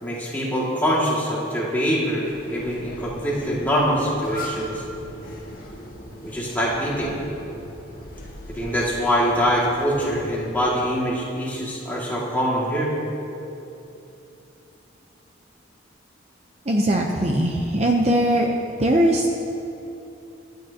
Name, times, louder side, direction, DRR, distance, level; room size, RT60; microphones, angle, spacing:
voice 1, 0.0-4.8 6.2-7.2 8.5-12.9, equal, 10° left, -6 dB, 2.1 m, -24 dB
sound 1, 2.2-10.8, left 1 dB, 45° left, 1.7 m, -39 dB
voice 2, 16.7-18.5 18.8-19.3, right 1 dB, 35° right, 1 dB, 0.7 m, -20 dB
25.0 x 9.3 x 2.9 m, 2.9 s
head